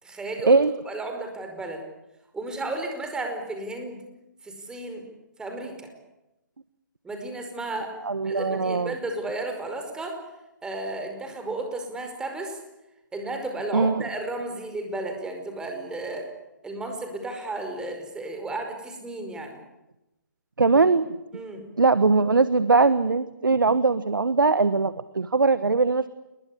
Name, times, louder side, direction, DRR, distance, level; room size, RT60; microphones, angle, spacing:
voice 1, 0.0-0.6 0.8-1.8 2.3-4.0 4.4-5.0 5.4-5.9 7.0-10.2 10.6-12.6 13.1-16.3 16.6-19.6 21.3-21.6, right 2 dB, 5° right, 4 dB, 5.1 m, -33 dB
voice 2, 8.0-8.9 13.7-14.0 20.6-21.1 21.8-26.1, right 4 dB, 85° right, 14 dB, 1.3 m, -21 dB
28.5 x 21.5 x 8.6 m, 0.95 s
figure-of-eight pair, 140°, 11 cm